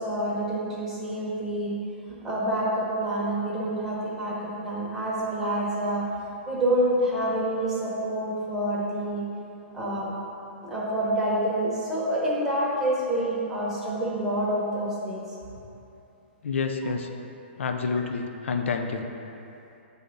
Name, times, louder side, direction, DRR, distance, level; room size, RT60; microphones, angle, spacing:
voice 1, 0.0-1.8 2.2-6.1 6.5-9.2 9.7-10.1 10.6-15.2, right 1 dB, 5° right, -7 dB, 1.0 m, -27 dB
voice 2, 16.4-17.1 17.6-19.0, left 4 dB, 85° left, 5 dB, 0.5 m, -28 dB
7.9 x 3.4 x 3.9 m, 2.8 s
hypercardioid pair, 160°, 7 cm